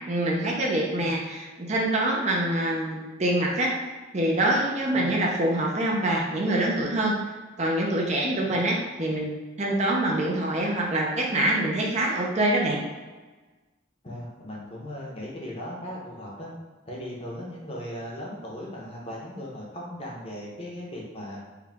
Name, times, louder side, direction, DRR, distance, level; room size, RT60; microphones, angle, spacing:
voice 1, 0.1-3.7 4.1-7.2 7.6-9.3 9.6-12.8, right 1 dB, 35° right, -2 dB, 0.6 m, -25 dB
voice 2, 14.0-16.5 16.9-21.4, equal, 30° left, -3 dB, 0.8 m, -38 dB
4.8 x 2.3 x 3.4 m, 1.3 s
head